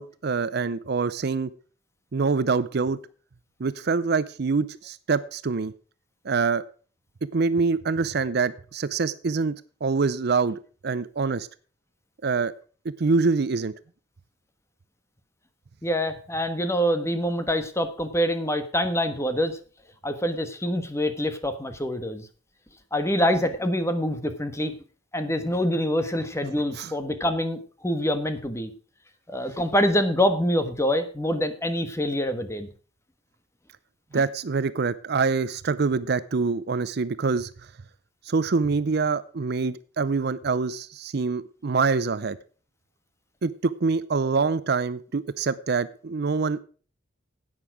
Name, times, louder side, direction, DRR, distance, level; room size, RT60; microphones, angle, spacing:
voice 1, 0.0-1.5 2.1-3.0 3.6-5.7 6.2-6.6 7.3-9.5 9.8-11.5 12.2-12.5 13.0-13.7 26.7-26.9 34.1-37.5 38.3-42.4 43.4-46.6, right 4 dB, 55° right, 16 dB, 0.5 m, -25 dB
voice 2, 15.8-19.6 20.0-22.2 22.9-24.7 25.1-28.7 29.3-32.7 34.1-34.2, equal, 15° left, 9 dB, 1.3 m, -25 dB
11.0 x 9.0 x 4.8 m, 0.39 s
head